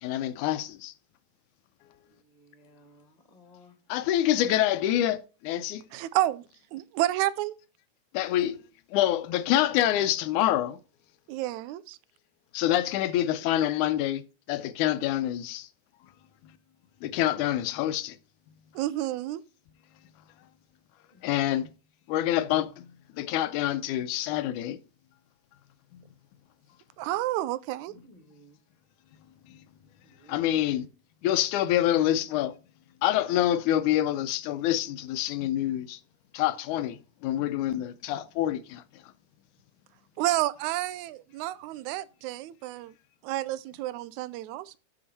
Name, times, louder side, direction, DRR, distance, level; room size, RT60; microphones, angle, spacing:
voice 1, 0.0-0.9 3.9-5.2 5.5-5.8 8.1-8.6 8.9-10.8 12.5-14.2 14.5-15.7 17.0-18.2 21.2-21.7 22.1-22.9 23.1-24.8 25.9-26.0 30.3-30.9 31.2-32.6 33.0-36.0 36.3-38.8, left 12 dB, 90° left, 2.2 m, -26 dB
voice 2, 2.1-3.8 21.1-21.6 27.9-28.6 30.0-30.6, left 1 dB, 20° left, 1.3 m, -57 dB
voice 3, 5.9-6.4 6.7-7.6 11.3-12.0 18.8-19.4 27.0-27.9 40.2-42.9 43.2-44.8, right 15 dB, 80° right, 2.0 m, -30 dB
8.6 x 6.5 x 4.1 m
omnidirectional pair, 3.5 m